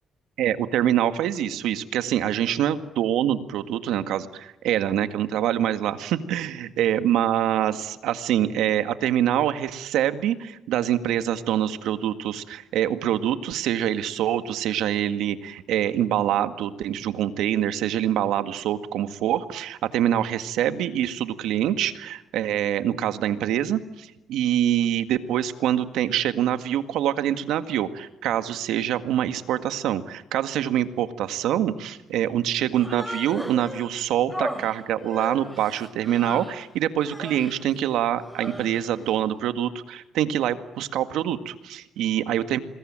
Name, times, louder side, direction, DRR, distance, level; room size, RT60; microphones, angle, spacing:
voice 1, 0.4-42.6, right 11 dB, 85° right, 10 dB, 1.9 m, -25 dB
Human voice, 32.7-33.9 34.3-36.6 37.0-37.6 38.2-39.0, equal, ahead, 3.3 m, -36 dB
27.0 x 21.5 x 9.0 m, 0.93 s
cardioid pair, 90°, 0 cm